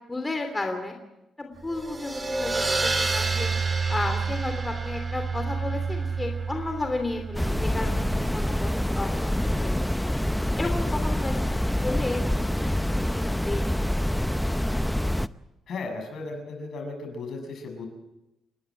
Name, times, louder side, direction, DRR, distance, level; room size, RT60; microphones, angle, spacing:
voice 1, 0.1-0.9 1.4-3.5 3.9-9.8 10.6-13.6, left 2 dB, 20° left, 5 dB, 3.1 m, -33 dB
sound 1, 1.7-8.8, right 4 dB, 25° right, 3.3 m, -29 dB
sound 2, 7.3-15.3, left 1 dB, 5° left, 0.6 m, -26 dB
voice 2, 15.7-17.9, left 3 dB, 60° left, 4 dB, 6.8 m, -35 dB
29.5 x 11.5 x 8.7 m, 0.93 s
cardioid pair, 90°, 0 cm